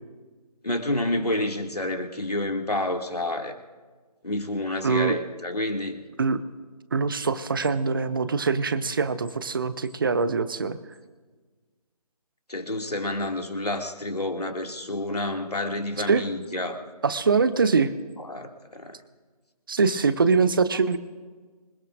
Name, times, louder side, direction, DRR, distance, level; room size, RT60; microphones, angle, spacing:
voice 1, 0.6-3.5 4.2-6.0 12.5-16.8 18.3-18.9, left 1 dB, 80° left, 3 dB, 2.3 m, -29 dB
voice 2, 4.8-5.2 6.2-6.4 6.9-10.8 16.1-16.2 17.0-17.9 19.7-21.0, right 4 dB, 35° right, 14 dB, 0.7 m, -23 dB
26.5 x 17.0 x 2.5 m, 1.4 s
figure-of-eight pair, 155°, 20 cm